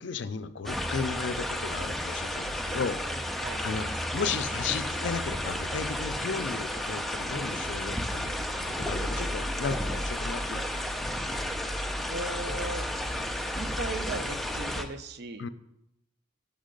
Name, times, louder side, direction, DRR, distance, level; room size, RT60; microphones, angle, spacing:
voice 1, 0.0-3.0 3.6-3.9 4.1-8.3 8.6-10.8 15.4-15.5, left 5 dB, 65° left, 12 dB, 0.4 m, -34 dB
sound 1, 0.7-14.9, left 1 dB, ahead, 0.4 m, -32 dB
voice 2, 12.1-12.9 13.5-15.5, right 2 dB, 55° right, 10 dB, 0.5 m, -37 dB
6.4 x 5.4 x 5.2 m, 0.85 s
head